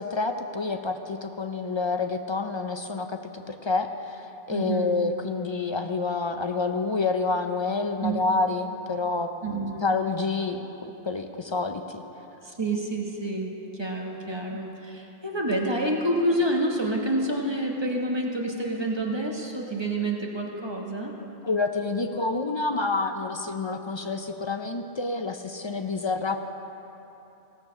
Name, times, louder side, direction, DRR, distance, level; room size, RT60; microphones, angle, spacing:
voice 1, 0.0-12.0 14.5-14.6 21.4-26.4, left 3 dB, 45° left, 6 dB, 0.4 m, -28 dB
voice 2, 4.5-5.0 8.0-8.1 9.4-9.9 12.6-21.1, right 1 dB, 25° right, 0 dB, 1.1 m, -28 dB
17.0 x 6.6 x 6.3 m, 3.0 s
omnidirectional pair, 1.1 m